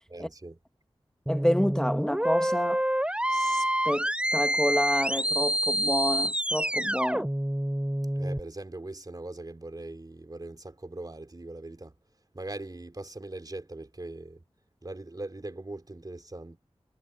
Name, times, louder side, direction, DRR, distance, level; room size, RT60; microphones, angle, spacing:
voice 1, 0.1-0.6 8.2-12.0 12.3-14.4 14.8-16.6, right 2 dB, 40° right, 3.3 m, -40 dB
voice 2, 1.3-2.8 3.3-7.3, equal, 5° left, 1.3 m, -29 dB
sound 1, 1.3-8.4, right 1 dB, 10° right, 5.0 m, -27 dB
wide cardioid pair, 50°, 10 cm